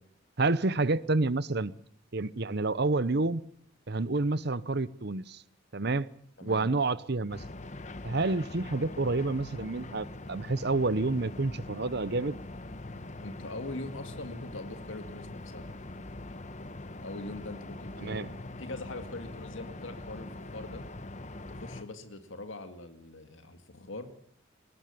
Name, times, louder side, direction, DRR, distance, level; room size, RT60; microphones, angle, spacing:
voice 1, 0.4-1.7 2.1-3.4 3.9-5.4 5.7-6.1 6.4-7.4 8.0-12.4 18.0-18.3, right 3 dB, 55° right, 17 dB, 0.9 m, -29 dB
voice 2, 6.4-6.7 13.2-15.6 17.0-18.3 18.6-20.8 21.5-24.1, left 2 dB, 75° left, 8 dB, 2.2 m, -42 dB
sound 1, 7.3-21.8, left 2 dB, 35° left, 1.1 m, -43 dB
22.0 x 18.0 x 6.9 m, 0.66 s
head